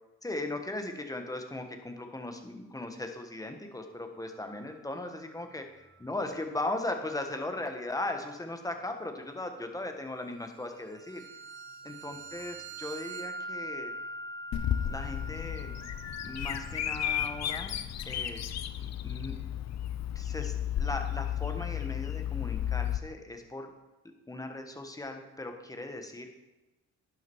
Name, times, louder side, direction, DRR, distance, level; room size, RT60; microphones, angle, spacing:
voice 1, 0.2-11.2 11.8-13.9 14.8-15.7 16.2-17.8 18.0-18.4 18.8-19.4 20.1-23.7 24.3-26.3, left 2 dB, 10° left, 5 dB, 1.3 m, -38 dB
sound 1, 4.3-4.7 5.1-5.4 10.9-17.4, right 2 dB, 40° right, 1.4 m, -43 dB
Bird vocalization bird call bird song, 14.5-23.0, left 10 dB, 60° left, 0.7 m, -33 dB
11.0 x 6.6 x 4.6 m, 1.1 s
cardioid pair, 90°, 30 cm